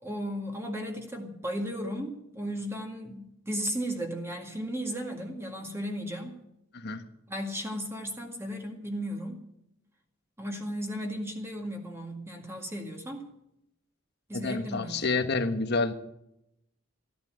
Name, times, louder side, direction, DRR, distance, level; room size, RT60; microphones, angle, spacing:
voice 1, 0.0-6.4 7.3-9.4 10.4-13.3 14.3-15.1, equal, 15° right, 2 dB, 2.0 m, -35 dB
voice 2, 14.3-15.9, left 3 dB, 55° left, 8 dB, 1.4 m, -28 dB
14.5 x 11.5 x 7.8 m, 0.82 s
head